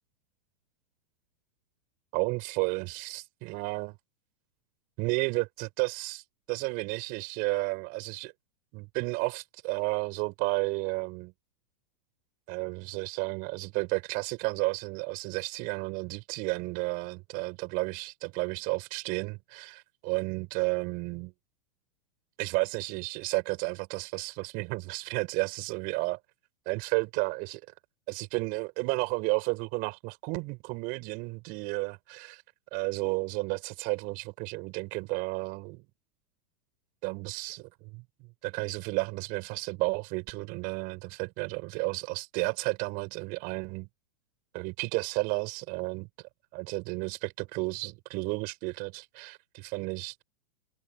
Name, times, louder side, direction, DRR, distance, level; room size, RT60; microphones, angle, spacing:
voice 1, 2.1-4.0 5.0-6.2 6.5-8.3 8.7-11.3 12.5-21.3 22.4-26.2 26.7-27.6 28.1-32.4 32.7-35.8 37.0-38.0 38.4-43.9 44.5-46.1 46.5-50.2, right 27 dB, 50° right, 6.1 m, -32 dB
hypercardioid pair, 110°, 20 cm